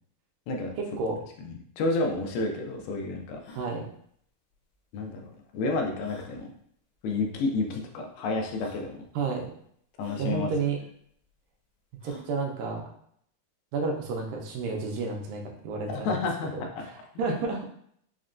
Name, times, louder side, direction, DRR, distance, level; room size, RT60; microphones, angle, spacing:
voice 1, 0.8-1.2 3.6-3.9 9.2-9.5 10.2-10.8 12.0-12.9 13.7-16.2 16.5-17.6, right 4 dB, 80° right, 0 dB, 2.1 m, -31 dB
voice 2, 1.4-3.4 4.9-6.5 7.0-9.0 10.0-10.5 15.9-16.5, left 3 dB, 90° left, 2 dB, 2.5 m, -30 dB
sound 1, 1.8-1.9 2.1-2.2 2.7-2.8 3.3-3.7 5.0-5.1 6.0-6.3 7.3-7.4 8.1-8.2 8.6-8.9 10.0-10.3 12.0-12.3, left 3 dB, 75° left, 1.8 m, -47 dB
6.1 x 2.2 x 2.5 m, 0.66 s
omnidirectional pair, 4.1 m